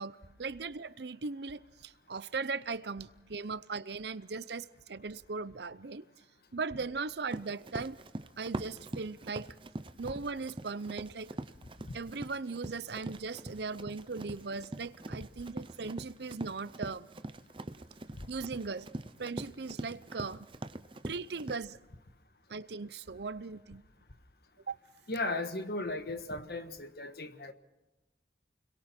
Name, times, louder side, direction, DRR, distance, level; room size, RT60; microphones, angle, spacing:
voice 1, 0.0-6.0 6.5-8.0 8.4-9.5 10.0-11.3 11.9-17.1 18.3-18.9 19.2-20.5 21.1-21.8 22.5-23.8 24.7-24.8, right 4 dB, 75° right, 0.7 m, -38 dB
Run, 7.3-21.5, right 1 dB, 30° right, 0.7 m, -43 dB
voice 2, 25.1-27.5, left 2 dB, 60° left, 1.5 m, -36 dB
29.5 x 22.0 x 4.5 m
head